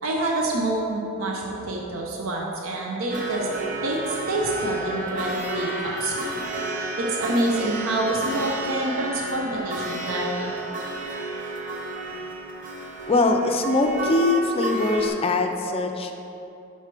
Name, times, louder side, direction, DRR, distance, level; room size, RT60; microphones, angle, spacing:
voice 1, 0.0-3.5 3.8-6.3 7.0-10.5, right 1 dB, 80° right, -1 dB, 0.7 m, -27 dB
sound 1, 3.1-15.1, right 2 dB, 40° right, 0.8 m, -31 dB
voice 2, 13.1-16.1, left 2 dB, 30° left, 4 dB, 0.5 m, -22 dB
5.7 x 4.6 x 5.9 m, 2.9 s
head